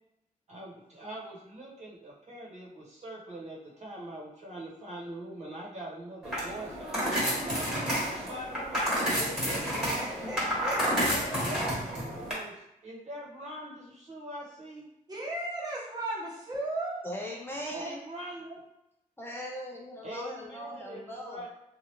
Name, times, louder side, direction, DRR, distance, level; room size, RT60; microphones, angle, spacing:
voice 1, 0.5-7.7 8.2-9.6 10.2-10.4 11.4-14.9 17.7-18.6 20.0-21.5, right 1 dB, 50° right, -5 dB, 1.1 m, -43 dB
sound 1, 6.2-12.3, equal, 5° right, 1.2 m, -30 dB
voice 2, 9.9-11.7 15.1-17.1, right 1 dB, 25° right, -4 dB, 0.9 m, -36 dB
voice 3, 17.0-18.0 19.2-21.4, equal, 15° left, -2 dB, 0.4 m, -39 dB
3.2 x 2.4 x 2.9 m, 0.86 s
wide cardioid pair, 110°, 15 cm